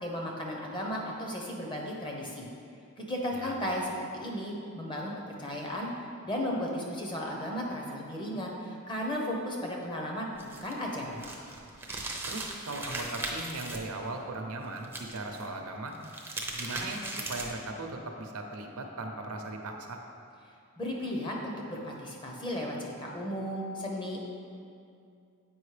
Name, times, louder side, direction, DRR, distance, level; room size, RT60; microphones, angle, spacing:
voice 1, 0.0-2.5 3.0-5.1 5.4-5.9 6.2-10.3 10.6-11.2 20.8-24.3, equal, 20° left, -1 dB, 0.8 m, -35 dB
sound 1, 10.4-13.8 14.8-15.4 15.9-17.6, right 2 dB, 10° right, 0.5 m, -38 dB
voice 2, 12.3-15.9 16.5-20.0, right 2 dB, 80° right, 3 dB, 0.7 m, -38 dB
7.9 x 5.1 x 3.3 m, 2.4 s
head